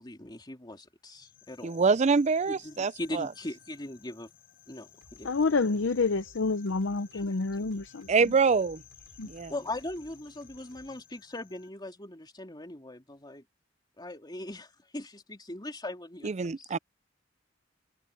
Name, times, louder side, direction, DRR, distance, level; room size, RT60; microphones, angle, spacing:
voice 1, 0.0-1.8 2.5-4.3 4.7-5.3 7.1-7.2 9.5-13.4 14.0-16.7, left 1 dB, 20° left, 3.0 m, -40 dB
sound 1, 1.1-11.7, left 11 dB, 50° left, 7.3 m, -57 dB
voice 2, 1.6-3.3 8.1-8.8 9.2-9.5 16.2-16.8, right 4 dB, 35° right, 0.5 m, -25 dB
sound 2, 5.0-11.0, right 1 dB, 80° right, 4.5 m, -58 dB
voice 3, 5.2-8.3 9.2-9.3, left 4 dB, 75° left, 0.7 m, -28 dB
head